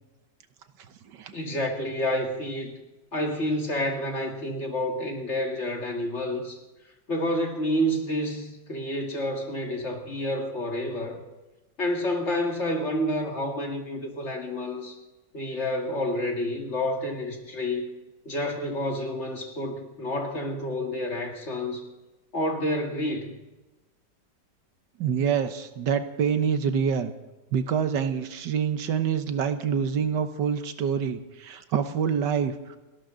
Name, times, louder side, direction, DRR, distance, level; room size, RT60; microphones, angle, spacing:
voice 1, 1.3-2.8 3.1-6.6 7.1-11.2 11.8-15.0 15.3-17.9 18.3-21.9 22.3-23.4, left 1 dB, 40° left, 2 dB, 2.4 m, -29 dB
voice 2, 25.0-27.1 27.5-32.8, right 7 dB, 85° right, 9 dB, 1.7 m, -26 dB
30.0 x 12.5 x 3.9 m, 1.1 s
omnidirectional pair, 1.9 m